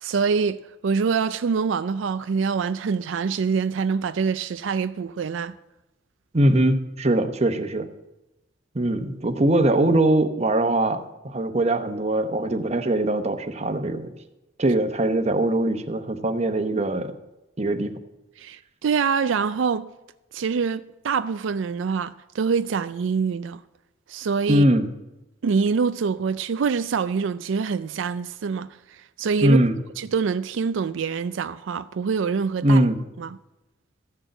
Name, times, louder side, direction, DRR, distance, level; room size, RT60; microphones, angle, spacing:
voice 1, 0.0-5.5 18.4-19.9 20.3-23.6 24.1-24.6 25.4-29.6 30.0-32.8 33.2-33.4, right 5 dB, 85° right, 0.4 m, -25 dB
voice 2, 6.3-7.9 8.7-14.1 14.6-17.1 17.6-17.9 24.5-24.9 29.4-29.8 32.6-33.0, right 1 dB, 35° right, 1.0 m, -21 dB
14.0 x 6.4 x 7.9 m
head